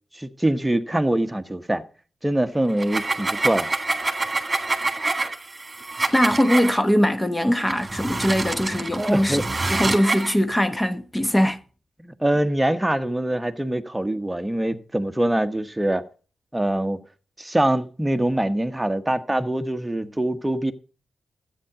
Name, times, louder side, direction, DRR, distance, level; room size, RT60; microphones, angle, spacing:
voice 1, 0.1-1.8 2.2-3.7 8.7-9.4 12.0-16.0 16.5-17.0 17.4-20.7, right 1 dB, 10° right, 1.2 m, -24 dB
sound 1, 2.7-6.8 7.6-10.3, right 3 dB, 25° right, 2.1 m, -26 dB
voice 2, 6.1-11.6, equal, 15° left, 1.0 m, -21 dB
13.0 x 9.1 x 4.9 m
cardioid pair, 55°, 0 cm